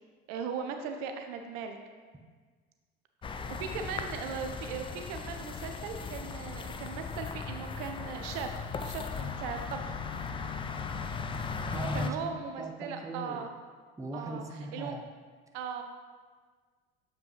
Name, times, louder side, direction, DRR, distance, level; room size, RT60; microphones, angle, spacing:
voice 1, 0.3-1.8 3.5-8.5 8.8-10.0 11.9-13.5 14.1-15.0 15.5-15.8, right 6 dB, 65° right, 6 dB, 0.6 m, -38 dB
sound 1, 3.2-12.1, left 5 dB, 15° left, 0.4 m, -37 dB
voice 2, 11.7-12.3 12.6-13.5 14.0-15.1, right 2 dB, 10° right, 2 dB, 0.8 m, -40 dB
7.4 x 5.1 x 3.1 m, 1.5 s
hypercardioid pair, 70°, 31 cm